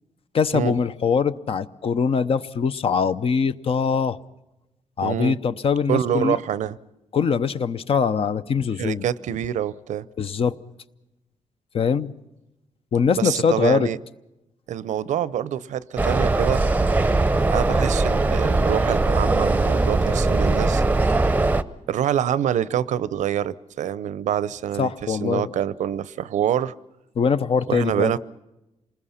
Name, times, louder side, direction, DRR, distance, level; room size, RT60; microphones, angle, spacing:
voice 1, 0.3-4.2 5.0-6.4 7.1-9.1 10.2-10.6 11.7-12.1 12.9-13.9 24.8-25.5 27.2-28.1, left 6 dB, 50° left, 13 dB, 0.8 m, -22 dB
voice 2, 5.0-5.4 5.9-6.8 8.8-10.0 13.1-14.0 14.7-16.6 17.5-20.8 21.9-26.7 27.7-28.2, right 10 dB, 85° right, 18 dB, 0.7 m, -26 dB
sound 1, 16.0-21.6, right 2 dB, 15° right, 0.7 m, -20 dB
28.0 x 20.0 x 5.8 m, 0.94 s
cardioid pair, 115°, 12 cm